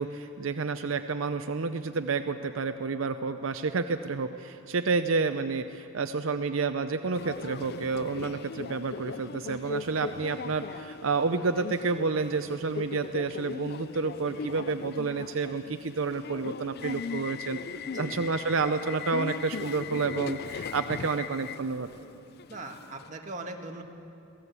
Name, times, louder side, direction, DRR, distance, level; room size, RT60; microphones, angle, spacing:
voice 1, 0.0-17.6 18.0-21.9, right 4 dB, 80° right, 8 dB, 0.7 m, -30 dB
Subway metro underground, 7.1-23.1, left 5 dB, 50° left, 0.4 m, -39 dB
voice 2, 17.7-18.2 22.5-23.8, right 2 dB, 35° right, 1 dB, 1.8 m, -40 dB
22.5 x 16.5 x 8.3 m, 2.7 s
head